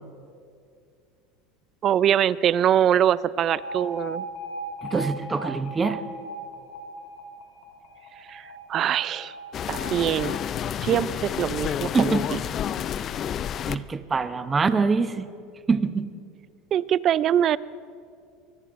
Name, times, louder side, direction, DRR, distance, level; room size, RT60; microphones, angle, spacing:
voice 1, 1.8-4.2 8.3-9.3 9.7-10.3 10.8-12.4 16.7-17.6, right 10 dB, 40° right, 19 dB, 0.4 m, -23 dB
Alarm, 3.5-11.5, right 1 dB, 85° left, 4.9 m, -38 dB
voice 2, 4.8-6.0 11.9-12.2 13.7-15.2 15.7-16.1, right 4 dB, 20° right, 11 dB, 0.7 m, -24 dB
sound 1, 9.5-13.7, left 9 dB, 35° left, 0.4 m, -29 dB
24.5 x 21.0 x 2.5 m, 2.4 s
supercardioid pair, 130°, 0 cm